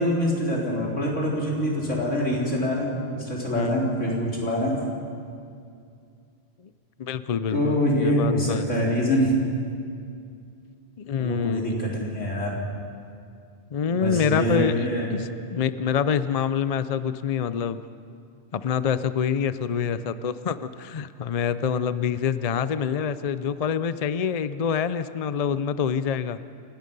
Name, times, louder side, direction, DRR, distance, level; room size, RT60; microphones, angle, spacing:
voice 1, 0.0-4.7 7.5-9.4 11.2-12.6 13.9-15.1, equal, 80° left, -3 dB, 4.3 m, -25 dB
voice 2, 3.5-3.9 7.0-8.7 11.0-11.6 13.7-17.8 18.5-26.4, left 7 dB, 45° left, 13 dB, 0.5 m, -26 dB
28.5 x 18.0 x 5.4 m, 2.4 s
omnidirectional pair, 1.3 m